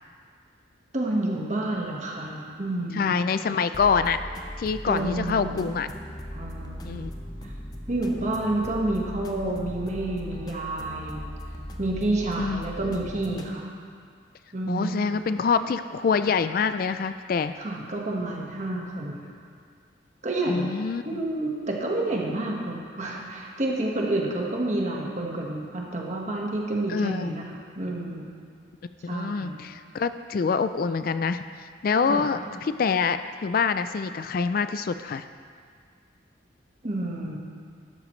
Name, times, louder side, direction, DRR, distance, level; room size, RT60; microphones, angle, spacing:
voice 1, 0.9-3.1 4.9-5.7 6.3-7.2 7.9-11.2 11.8-13.7 14.5-15.1 17.6-19.2 20.2-20.7 21.0-27.4 27.7-28.3 29.1-29.6 32.1-32.2 36.8-37.4, right 2 dB, 40° right, -2 dB, 1.5 m, -29 dB
voice 2, 2.9-4.2 4.6-5.9 6.8-7.1 12.4-13.0 14.7-17.5 20.5-21.2 26.9-27.4 29.0-31.4 31.8-35.2, left 5 dB, 50° left, 11 dB, 0.3 m, -26 dB
sound 1, 3.7-13.5, equal, 20° left, 0.7 m, -39 dB
12.5 x 12.0 x 3.2 m, 2.1 s
head